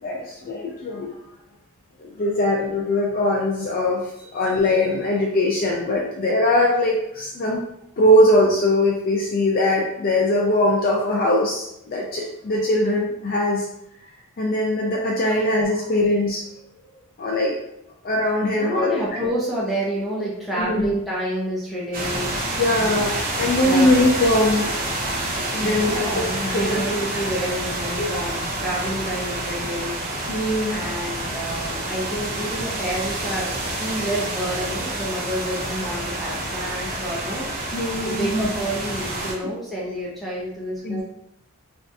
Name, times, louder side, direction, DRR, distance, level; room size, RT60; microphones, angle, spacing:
voice 1, 0.0-1.1 2.0-7.6 8.0-13.7 14.4-16.4 17.2-17.5 18.0-18.9 20.5-20.9 22.6-24.7 25.3-26.3 26.5-26.8 28.0-28.3 30.3-30.8 37.7-38.5 40.8-41.0, left 1 dB, 45° left, -2 dB, 0.4 m, -21 dB
voice 2, 18.4-22.4 22.7-23.0 23.6-24.0 25.6-37.5 38.0-41.0, right 1 dB, ahead, -7 dB, 0.6 m, -29 dB
sound 1, 21.9-39.3, right 1 dB, 40° right, 0.7 m, -28 dB
3.4 x 2.5 x 2.6 m, 0.79 s
head